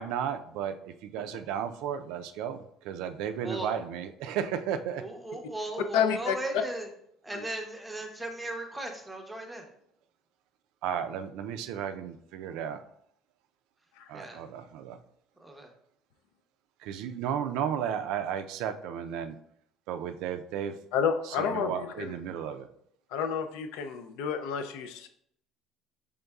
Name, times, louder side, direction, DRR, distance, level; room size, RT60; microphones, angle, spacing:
voice 1, 0.0-5.0 10.8-12.8 14.1-15.0 16.8-19.4 19.9-20.8 21.3-22.7, right 8 dB, 75° right, 9 dB, 0.3 m, -34 dB
voice 2, 3.4-3.8 5.0-6.9 7.2-9.7 14.1-14.4 15.4-15.7, right 1 dB, 5° right, 3 dB, 0.6 m, -37 dB
voice 3, 5.9-6.3 7.3-7.4 14.0-14.1 20.9-22.1 23.1-25.1, left 7 dB, 85° left, 7 dB, 0.4 m, -30 dB
5.2 x 3.6 x 2.3 m, 0.71 s
cardioid pair, 150°, 0 cm